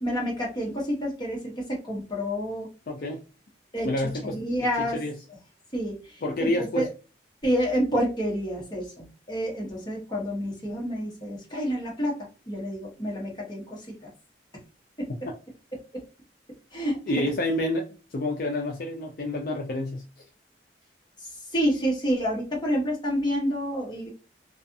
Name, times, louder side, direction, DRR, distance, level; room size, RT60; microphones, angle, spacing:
voice 1, 0.0-2.7 3.7-3.9 4.2-5.0 5.7-6.9 7.4-12.1 12.5-14.1 14.5-14.6 15.0-15.1 16.7-17.0 21.2-24.1, equal, 25° left, -3 dB, 1.0 m, -29 dB
voice 2, 2.9-3.2 3.8-4.4 4.9-5.1 6.2-6.9 17.1-20.0, left 1 dB, 55° left, 1 dB, 0.4 m, -28 dB
2.4 x 2.3 x 2.5 m, 0.32 s
head